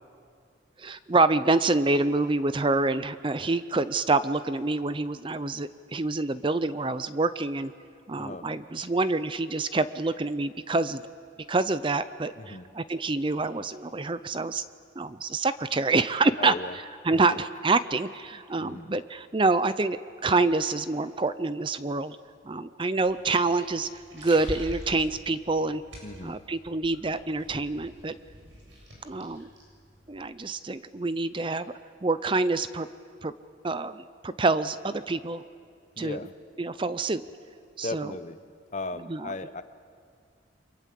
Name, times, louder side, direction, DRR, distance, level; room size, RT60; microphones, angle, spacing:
voice 1, 0.8-7.7 8.1-11.0 11.5-14.7 15.0-16.5 17.0-22.2 22.5-25.8 26.2-28.1 29.0-29.5 30.1-31.7 32.0-32.9 33.2-33.3 33.6-35.4 36.0-36.2 36.6-37.2 37.8-38.1 39.1-39.3, right 3 dB, 25° right, 13 dB, 0.6 m, -27 dB
voice 2, 8.1-8.5 12.4-12.7 16.4-16.8 18.6-18.9 26.0-26.4 36.0-36.3 37.8-38.4 38.7-39.6, left 2 dB, 40° left, 11 dB, 0.9 m, -36 dB
sound 1, 22.9-30.3, equal, 85° right, 7.9 m, -45 dB
30.0 x 23.5 x 7.6 m, 2.3 s
head